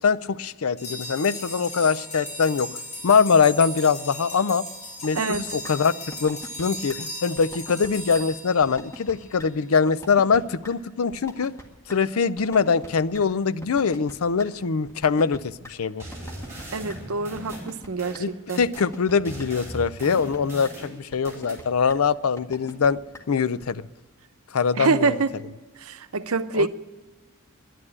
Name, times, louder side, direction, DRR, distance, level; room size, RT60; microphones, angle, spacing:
voice 1, 0.0-2.7 3.0-4.7 5.0-5.9 6.2-11.5 11.9-16.0 18.2-23.0 23.3-23.8 24.5-25.2 26.5-26.7, left 5 dB, 75° left, 15 dB, 0.5 m, -23 dB
sound 1, 0.8-9.3, left 1 dB, 30° left, 5.9 m, -37 dB
sound 2, 5.0-5.4 5.6-5.7 6.1-6.6 6.9-7.0 7.4-8.2 8.6-9.1 9.4-9.5 9.9-10.4 10.6-10.7 11.1-11.6 11.9-12.0 12.4-13.2 13.6-14.5 14.9-15.7 16.1-16.6 16.9-17.0 17.4-17.9 18.1-18.2 18.6-19.1 19.4-19.5 19.9-20.4 20.6-20.7 21.1-21.6 21.9-22.0 22.4-22.9 23.1-23.2 23.6-23.7, equal, 15° left, 1.8 m, -41 dB
voice 2, 5.1-5.5 16.7-18.6 24.8-25.3 25.8-26.7, right 4 dB, 80° right, 10 dB, 0.8 m, -25 dB
sound 3, 16.0-18.9 19.3-21.6, right 1 dB, 10° right, 4.7 m, -39 dB
11.0 x 11.0 x 9.8 m, 1.3 s
head